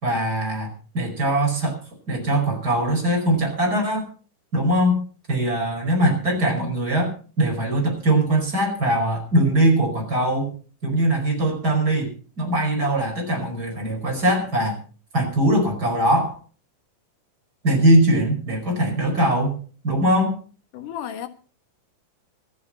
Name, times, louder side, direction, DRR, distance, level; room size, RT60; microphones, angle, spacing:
voice 1, 0.0-1.8 2.1-4.1 4.5-5.0 5.3-10.5 10.8-14.8 15.1-16.4 17.6-19.6 19.8-20.4, right 1 dB, 30° right, 1 dB, 5.5 m, -21 dB
voice 2, 20.7-21.3, left 10 dB, 75° left, 8 dB, 3.0 m, -32 dB
25.5 x 8.5 x 4.3 m, 0.39 s
omnidirectional pair, 3.7 m